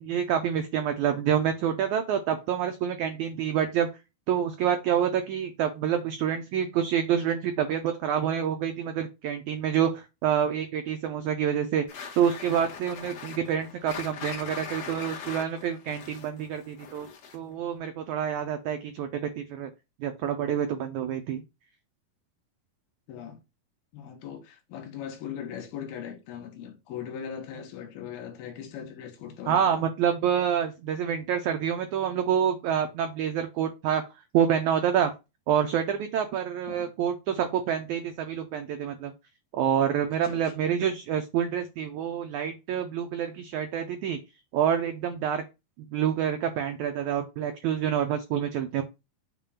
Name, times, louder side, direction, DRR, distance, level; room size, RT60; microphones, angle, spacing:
voice 1, 0.0-3.9 4.3-11.9 12.2-17.1 17.3-19.7 20.0-21.4 29.5-34.0 34.3-35.1 35.5-39.1 39.5-44.2 44.5-45.4 45.9-48.8, right 9 dB, 85° right, 1.7 m, -27 dB
sound 1, 11.9-17.5, left 6 dB, 60° left, 1.7 m, -41 dB
voice 2, 23.9-29.9 36.7-36.9 40.2-40.4 48.8-48.9, left 8 dB, 80° left, 3.1 m, -39 dB
7.1 x 2.5 x 5.6 m
omnidirectional pair, 4.3 m